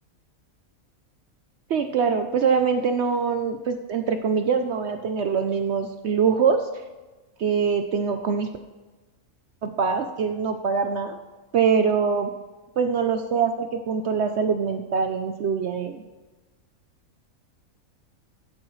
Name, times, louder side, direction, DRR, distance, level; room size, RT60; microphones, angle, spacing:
voice 1, 1.7-6.7 7.4-8.5 9.6-11.2 11.5-12.3 12.8-16.0, right 6 dB, 60° right, 7 dB, 0.8 m, -23 dB
14.5 x 8.6 x 3.1 m, 1.2 s
omnidirectional pair, 1.5 m